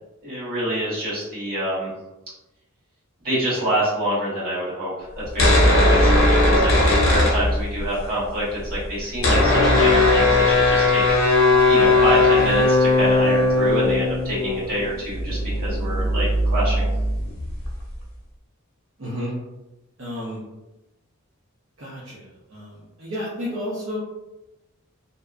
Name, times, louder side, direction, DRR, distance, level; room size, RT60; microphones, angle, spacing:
voice 1, 0.2-1.9 3.2-5.1 5.3-11.0 11.3-16.9, equal, 45° right, -8 dB, 1.2 m, -26 dB
sound 1, 5.2-8.0 8.2-8.3 8.5-17.9, left 2 dB, 70° left, 0.7 m, -18 dB
voice 2, 19.0-19.3 20.0-20.4 21.8-24.0, equal, 70° right, -8 dB, 0.7 m, -32 dB
2.7 x 2.2 x 2.3 m, 0.99 s
head